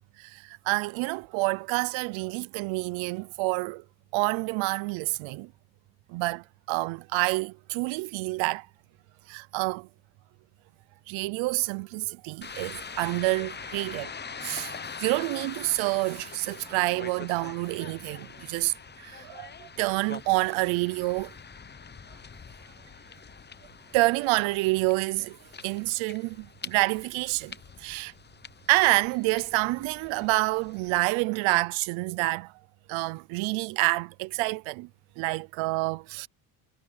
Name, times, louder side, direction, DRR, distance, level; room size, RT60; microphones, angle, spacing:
voice 1, 0.2-3.8 4.1-5.5 6.1-8.7 9.3-9.9 11.1-14.1 14.4-14.7 15.0-21.3 23.9-25.4 25.6-28.1 28.7-32.5 32.9-34.9 35.2-36.3, right 23 dB, 90° right, 0.7 m, -28 dB
sound 1, 12.4-31.0, left 5 dB, 20° left, 0.9 m, -44 dB
cardioid pair, 90°, 45 cm